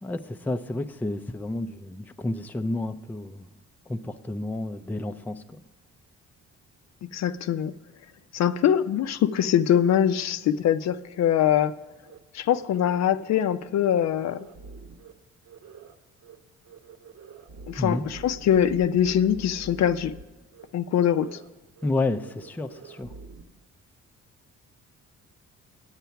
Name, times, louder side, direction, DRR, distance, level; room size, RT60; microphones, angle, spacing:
voice 1, 0.0-3.5 3.9-5.4 17.8-18.1 21.8-23.1, left 2 dB, 5° left, 7 dB, 0.4 m, -30 dB
voice 2, 7.0-7.7 8.3-11.7 12.3-14.5 17.7-20.1 20.7-21.4, left 9 dB, 60° left, 12 dB, 0.5 m, -23 dB
sound 1, 12.0-12.2 12.5-13.0 13.3-13.4 13.7-15.1 15.4-16.0 16.2-16.4 16.6-20.2 20.5-20.7 21.0-21.5 21.8-21.9 22.2-23.4, right 4 dB, 60° right, 1.0 m, -46 dB
9.1 x 8.1 x 5.7 m, 1.2 s
cardioid pair, 90°, 30 cm